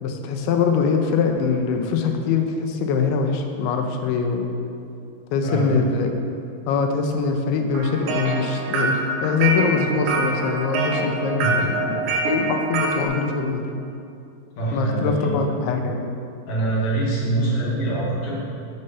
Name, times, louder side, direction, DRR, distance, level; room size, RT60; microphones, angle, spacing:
voice 1, 0.0-4.5 5.3-6.1 6.7-9.0 9.2-13.7 14.7-16.1, left 5 dB, 85° left, 5 dB, 2.5 m, -23 dB
voice 2, 5.4-5.8 11.4-11.5 14.6-15.5 16.5-18.3, right 2 dB, 60° left, -6 dB, 2.1 m, -24 dB
sound 1, 7.7-13.1, right 3 dB, 90° right, 2.7 m, -25 dB
6.5 x 4.3 x 5.5 m, 2.6 s
omnidirectional pair, 4.5 m